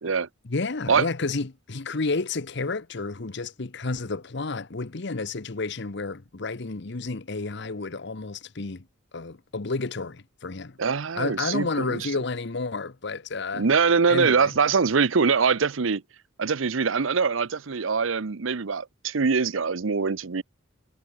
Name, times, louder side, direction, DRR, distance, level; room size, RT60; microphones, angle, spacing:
voice 1, 0.4-8.8 9.1-10.8 11.2-13.7 14.1-14.5, left 3 dB, 60° left, 1.0 m, -31 dB
voice 2, 10.8-12.1 13.6-16.0 16.4-20.4, right 5 dB, 85° right, 0.8 m, -23 dB
head